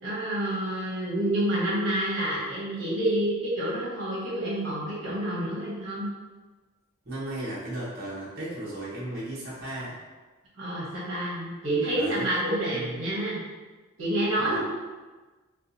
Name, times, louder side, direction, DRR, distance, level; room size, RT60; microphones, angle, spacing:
voice 1, 0.0-6.1 10.6-13.4 14.0-14.6, right 1 dB, 70° right, -7 dB, 1.1 m, -28 dB
voice 2, 7.0-10.0 11.9-12.3 12.7-12.9 14.4-14.6, right 1 dB, 50° right, -9 dB, 1.0 m, -35 dB
4.4 x 2.4 x 2.7 m, 1.3 s
head